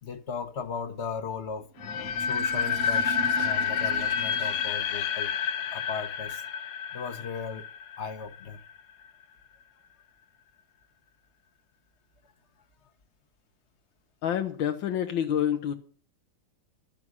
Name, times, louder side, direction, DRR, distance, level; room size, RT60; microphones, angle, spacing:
voice 1, 0.0-1.7 2.2-5.3 5.7-6.4 6.9-7.7 8.0-8.6, left 5 dB, 45° left, 1.0 m, -37 dB
sound 1, 1.6-4.8, right 12 dB, 65° right, 2.5 m, -40 dB
sound 2, 1.8-8.7, left 7 dB, 70° left, 1.5 m, -29 dB
voice 2, 14.2-15.7, left 9 dB, 85° left, 1.8 m, -27 dB
12.5 x 10.5 x 6.2 m
omnidirectional pair, 2.0 m